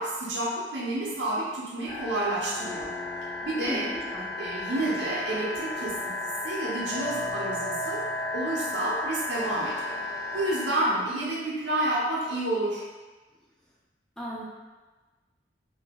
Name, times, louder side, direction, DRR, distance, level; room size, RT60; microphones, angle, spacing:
voice 1, 0.0-2.9 3.4-3.9 4.4-6.1 6.4-8.1 8.3-10.0 10.3-12.8, right 1 dB, 70° right, -5 dB, 0.8 m, -29 dB
sound 1, 1.9-10.7, left 2 dB, 75° left, 0.9 m, -33 dB
voice 2, 3.6-4.3 10.9-11.0 14.2-14.4, equal, 5° left, -6 dB, 0.4 m, -36 dB
2.7 x 2.2 x 3.5 m, 1.3 s
head